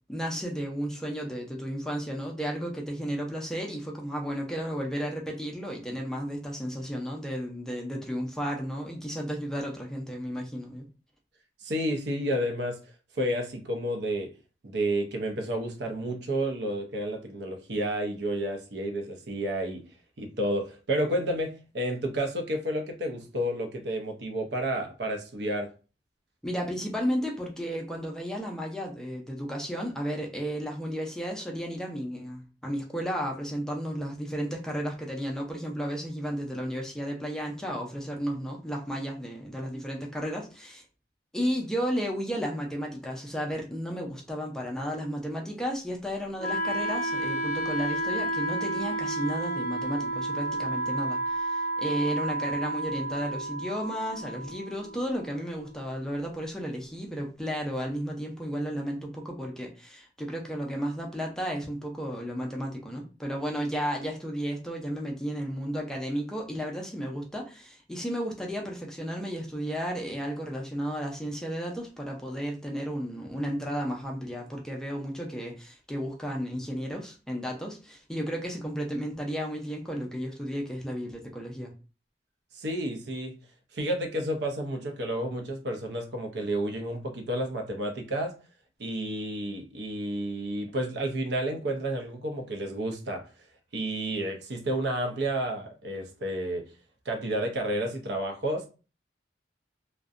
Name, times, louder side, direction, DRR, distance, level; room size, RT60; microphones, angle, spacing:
voice 1, 0.1-10.8 26.4-40.8 41.3-81.7, equal, 5° left, 0.4 m, -33 dB
voice 2, 11.6-12.8 13.2-14.3 14.6-19.8 20.2-25.7 82.5-83.3 83.7-88.4 88.8-93.2 93.7-96.7 97.1-98.7, right 1 dB, 65° right, 0.6 m, -31 dB
Wind instrument woodwind instrument, 46.4-56.4, right 2 dB, 45° left, 0.7 m, -32 dB
2.6 x 2.1 x 2.4 m
head